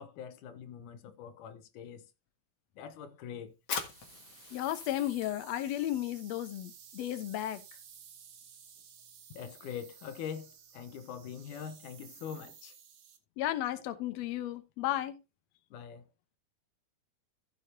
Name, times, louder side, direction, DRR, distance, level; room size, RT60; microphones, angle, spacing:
voice 1, 0.0-2.1 2.8-3.6 9.3-12.8 15.7-16.1, left 8 dB, 90° left, 2.5 m, -43 dB
Fire, 3.6-10.8, left 6 dB, 45° left, 2.2 m, -46 dB
sound 1, 3.7-13.2, right 8 dB, 60° right, 2.5 m, -54 dB
voice 2, 4.5-7.6 13.4-15.2, left 13 dB, 65° left, 2.0 m, -34 dB
15.5 x 6.8 x 2.8 m
omnidirectional pair, 3.5 m